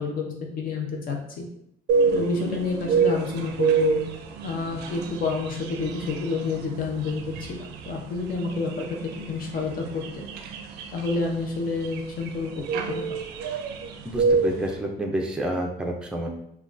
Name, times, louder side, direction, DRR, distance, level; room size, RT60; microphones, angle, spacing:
voice 1, 0.0-1.5 2.1-4.0 4.4-7.2 7.5-10.0 10.9-12.5 12.9-13.0, left 4 dB, 55° left, 1 dB, 0.6 m, -29 dB
sound 1, 1.9-14.7, right 5 dB, 85° right, 0.4 m, -28 dB
voice 2, 14.0-16.3, right 1 dB, 5° right, 0 dB, 0.4 m, -29 dB
3.5 x 2.3 x 2.5 m, 0.74 s
cardioid pair, 110°, 17 cm